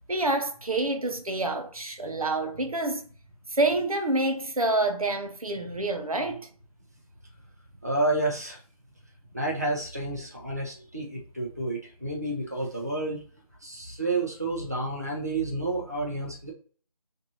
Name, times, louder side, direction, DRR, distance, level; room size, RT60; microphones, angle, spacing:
voice 1, 0.1-3.1 3.5-6.5, right 2 dB, 70° right, 0.9 m, -27 dB
voice 2, 7.8-8.6 9.3-13.2 13.6-16.5, right 2 dB, 25° right, 0.6 m, -30 dB
5.7 x 2.7 x 2.7 m
figure-of-eight pair, 180°, 19 cm